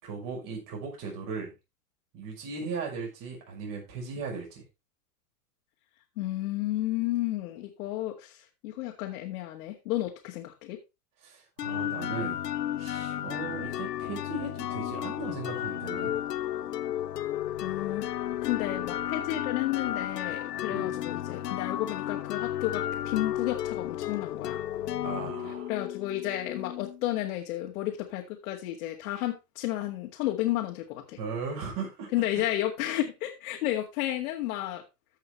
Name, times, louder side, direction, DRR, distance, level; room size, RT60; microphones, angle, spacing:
voice 1, 0.0-1.5 2.1-4.6 11.2-12.4 12.8-16.2 20.7-20.9 25.0-25.7 31.2-32.3, right 5 dB, 45° right, 0 dB, 5.5 m, -37 dB
voice 2, 6.2-10.8 17.6-18.1 18.4-24.6 25.7-31.2 32.1-34.8, left 14 dB, 65° left, 0 dB, 2.0 m, -32 dB
sound 1, 11.6-27.2, left 12 dB, 90° left, 0.7 m, -33 dB
15.0 x 5.8 x 3.2 m, 0.26 s
hypercardioid pair, 105°, 47 cm